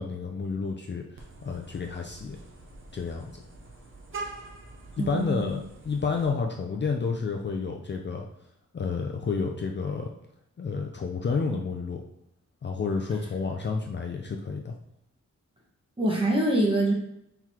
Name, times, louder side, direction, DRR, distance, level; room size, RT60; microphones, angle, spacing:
voice 1, 0.0-2.4 2.9-3.3 5.0-5.6 5.8-8.2 8.7-10.1 10.6-12.0 12.6-14.7, left 5 dB, 40° left, 2 dB, 0.5 m, -30 dB
Vehicle horn car horn honking, 1.2-6.3, right 3 dB, 45° right, 0.8 m, -44 dB
voice 2, 5.0-5.5 16.0-16.9, right 1 dB, 20° right, -2 dB, 1.1 m, -24 dB
4.6 x 3.9 x 2.8 m, 0.81 s
wide cardioid pair, 130°, 30 cm